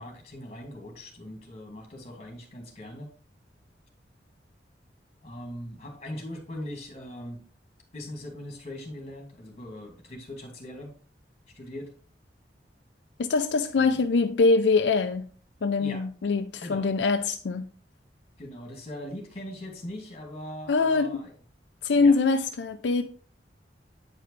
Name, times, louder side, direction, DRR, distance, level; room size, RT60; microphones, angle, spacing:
voice 1, 0.0-3.1 5.2-7.4 7.9-11.0 11.5-11.9 13.9-14.0 15.8-16.0 16.6-16.9 18.4-21.3 21.9-22.2, left 1 dB, 40° left, 2.2 m, -40 dB
voice 2, 13.2-15.3 15.6-17.7 20.7-21.2 21.8-23.0, left 4 dB, 85° left, 0.5 m, -23 dB
8.9 x 5.0 x 3.3 m
head